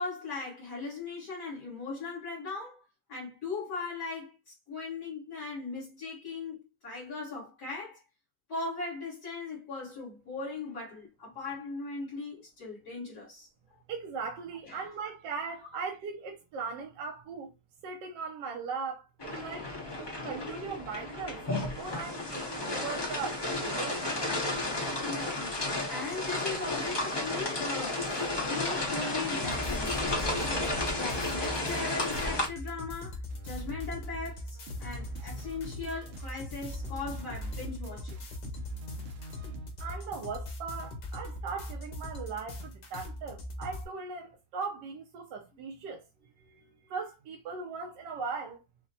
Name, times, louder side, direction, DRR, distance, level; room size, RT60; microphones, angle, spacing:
voice 1, 0.0-2.8 3.1-8.0 8.5-13.5 14.7-14.8 25.0-30.0 30.4-38.2, left 3 dB, 60° left, 2.1 m, -39 dB
voice 2, 13.9-17.5 17.8-19.8 20.2-21.4 21.8-24.0 39.8-46.0 46.4-48.6, right 5 dB, 85° right, 1.3 m, -39 dB
sound 1, 19.2-32.5, left 2 dB, 30° left, 0.4 m, -32 dB
sound 2, 29.4-43.8, left 1 dB, 85° left, 1.7 m, -41 dB
sound 3, 33.3-33.9 34.2-40.0, right 1 dB, 60° right, 0.6 m, -44 dB
5.9 x 2.1 x 2.7 m
omnidirectional pair, 1.8 m